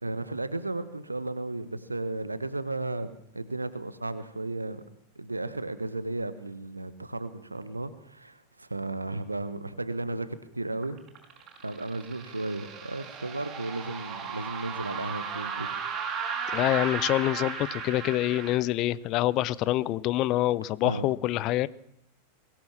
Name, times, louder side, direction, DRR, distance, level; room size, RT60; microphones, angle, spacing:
voice 1, 0.0-3.1 3.3-4.8 5.1-11.0 11.6-15.7 20.8-21.1, right 2 dB, 80° right, 13 dB, 1.3 m, -34 dB
sound 1, 10.8-18.6, right 6 dB, 30° right, 7.1 m, -35 dB
voice 2, 16.5-21.7, left 15 dB, 40° left, 20 dB, 0.8 m, -26 dB
22.5 x 17.0 x 7.4 m, 0.72 s
figure-of-eight pair, 90°, 0 cm